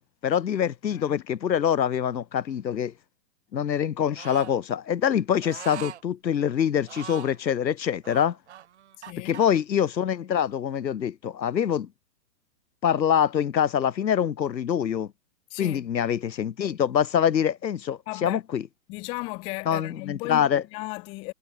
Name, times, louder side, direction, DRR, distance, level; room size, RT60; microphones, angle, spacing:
voice 1, 0.2-2.9 3.5-8.4 9.2-11.9 12.8-15.1 15.6-18.6 19.7-20.6, left 9 dB, 85° left, 2.5 m, -25 dB
voice 2, 0.9-1.2 9.0-9.4 15.5-15.9 18.1-18.4 18.9-21.3, left 26 dB, 10° left, 1.1 m, -36 dB
sound 1, 4.2-4.5 5.4-6.0 6.8-7.4 8.0-9.4, right 10 dB, 45° right, 1.4 m, -41 dB
hypercardioid pair, 175°, 50 cm